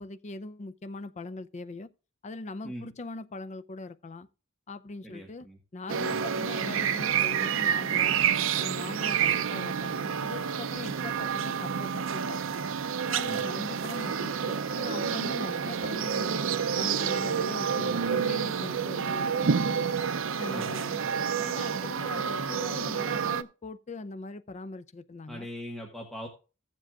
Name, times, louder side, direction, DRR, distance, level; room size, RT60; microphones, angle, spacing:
voice 1, 0.0-1.9 2.2-4.3 4.7-5.5 5.7-8.2 8.6-12.6 13.1-16.4 16.7-19.9 20.4-21.0 21.4-25.5, left 2 dB, 35° left, 0.5 m, -41 dB
voice 2, 5.0-5.6 6.1-6.3 13.3-13.4 20.5-20.7 25.3-26.3, equal, ahead, 1.3 m, -41 dB
sound 1, 5.9-23.4, right 7 dB, 70° right, 0.6 m, -29 dB
15.5 x 7.5 x 2.4 m
head